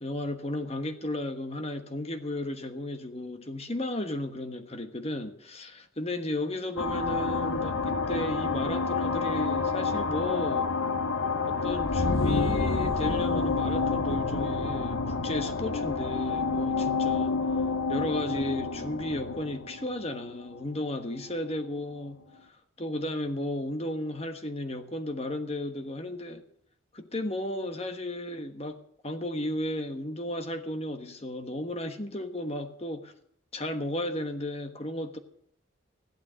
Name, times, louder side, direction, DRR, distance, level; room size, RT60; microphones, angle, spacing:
voice 1, 0.0-10.7 11.5-17.4 17.9-26.4 26.9-28.8 29.0-33.1 33.5-35.2, left 1 dB, 30° left, 1.3 m, -34 dB
sound 1, 6.8-20.9, left 4 dB, 80° left, 1.1 m, -28 dB
14.5 x 12.0 x 6.3 m
head